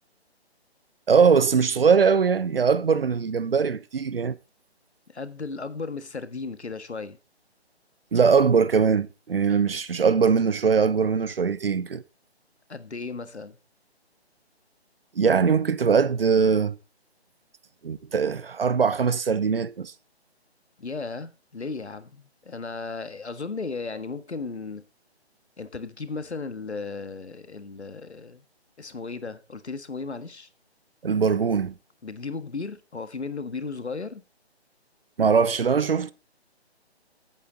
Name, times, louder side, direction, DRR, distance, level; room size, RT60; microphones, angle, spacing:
voice 1, 1.1-4.4 8.1-12.0 15.1-16.8 17.8-19.9 31.0-31.7 35.2-36.1, right 6 dB, 60° right, 1.1 m, -21 dB
voice 2, 5.1-7.2 12.7-13.6 20.8-24.8 25.6-28.4 28.8-30.5 32.0-34.2, left 4 dB, 80° left, 1.6 m, -35 dB
14.0 x 8.6 x 4.0 m
figure-of-eight pair, 150°, 33 cm